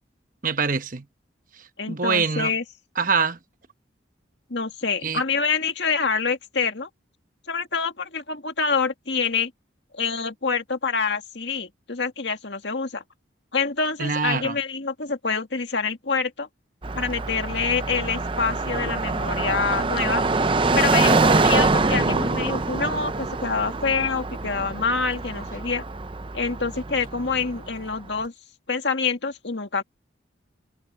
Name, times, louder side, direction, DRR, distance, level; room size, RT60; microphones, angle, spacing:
voice 1, 0.4-1.0 1.9-2.5 3.0-3.4 5.0-5.2 14.0-14.6, right 5 dB, 45° right, 1.0 m, -24 dB
voice 2, 1.8-2.6 4.5-6.9 7.5-9.5 9.9-13.0 13.5-16.5 16.9-20.2 20.8-25.8 26.3-28.3 28.7-29.8, left 5 dB, 65° left, 2.0 m, -26 dB
Car passing by, 16.8-27.9, right 3 dB, 25° right, 0.6 m, -24 dB
head